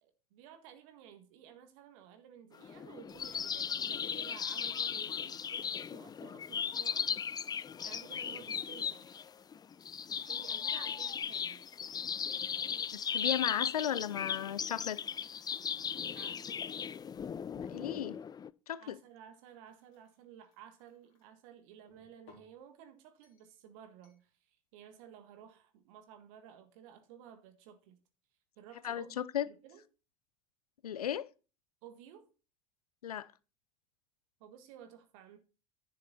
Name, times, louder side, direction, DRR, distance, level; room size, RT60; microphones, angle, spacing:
voice 1, 0.0-7.1 7.8-9.2 10.3-11.6 16.1-16.6 18.8-28.0 28.6-29.8 31.8-32.3 34.4-35.4, right 9 dB, 65° right, 1.7 m, -54 dB
sound 1, 2.5-18.5, left 7 dB, 20° left, 0.4 m, -37 dB
voice 2, 12.9-15.0 17.5-18.2 18.7-19.0 28.8-29.5 30.8-31.3 33.0-33.3, left 10 dB, 80° left, 0.6 m, -35 dB
sound 2, 19.0-21.3 21.9-22.6 23.2-23.6 24.0-24.3, left 7 dB, 65° left, 3.3 m, -66 dB
10.5 x 6.6 x 4.3 m
figure-of-eight pair, 70°, 19 cm